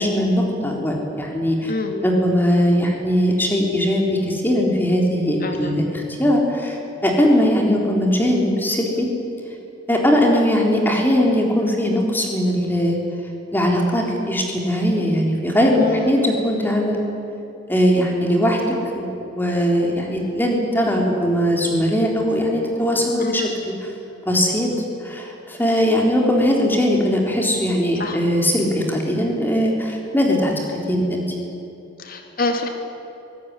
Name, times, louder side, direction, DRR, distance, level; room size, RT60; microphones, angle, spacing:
voice 1, 0.0-1.7 2.0-9.1 9.9-13.0 13.5-17.0 17.7-18.6 18.9-23.5 24.3-24.7 25.0-30.5 30.9-31.2, equal, 10° left, 0 dB, 3.9 m, -20 dB
voice 2, 1.7-2.0 5.4-5.8 7.3-7.5 15.7-16.2 23.2-23.6 28.0-28.2 32.0-32.7, left 3 dB, 50° left, 4 dB, 2.9 m, -26 dB
24.0 x 18.0 x 9.8 m, 3.0 s
head